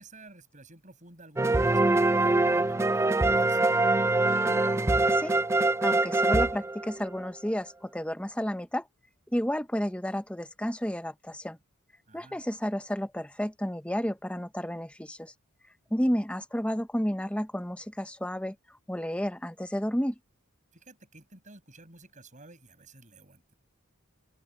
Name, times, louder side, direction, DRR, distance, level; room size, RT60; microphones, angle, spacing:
voice 1, 0.0-3.9 12.1-12.4 15.9-16.2 20.7-23.5, right 2 dB, 35° right, 7.0 m, -52 dB
sound 1, 1.4-7.3, right 2 dB, 15° right, 0.3 m, -24 dB
voice 2, 5.1-5.4 5.8-8.9 9.3-11.6 12.1-15.3 15.9-18.5 18.9-20.1, equal, 5° left, 1.0 m, -31 dB
open air
head